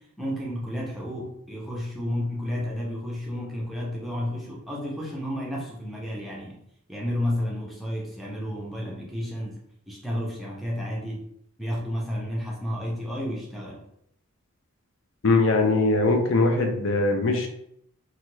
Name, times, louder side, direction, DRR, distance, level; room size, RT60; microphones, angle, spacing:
voice 1, 0.2-6.5 6.9-9.6 9.9-11.2 11.6-13.8, equal, ahead, -4 dB, 0.5 m, -31 dB
voice 2, 15.2-17.5, left 3 dB, 60° left, 4 dB, 0.5 m, -21 dB
2.9 x 2.3 x 3.1 m, 0.74 s
head